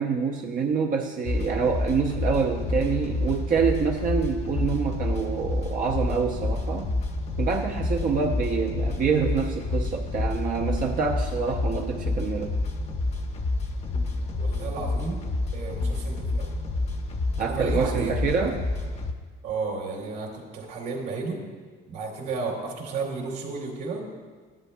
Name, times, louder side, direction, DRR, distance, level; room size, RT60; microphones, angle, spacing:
voice 1, 0.0-6.9 7.4-12.5 17.4-18.6, right 5 dB, 45° right, 1 dB, 0.7 m, -26 dB
sound 1, 1.2-19.1, left 2 dB, 35° left, 0.8 m, -29 dB
voice 2, 14.4-15.2 15.5-16.5 17.4-18.5 19.4-21.4 21.9-24.0, right 4 dB, 75° right, -2 dB, 2.4 m, -33 dB
13.0 x 11.0 x 2.2 m, 1.5 s
cardioid pair, 125°, 19 cm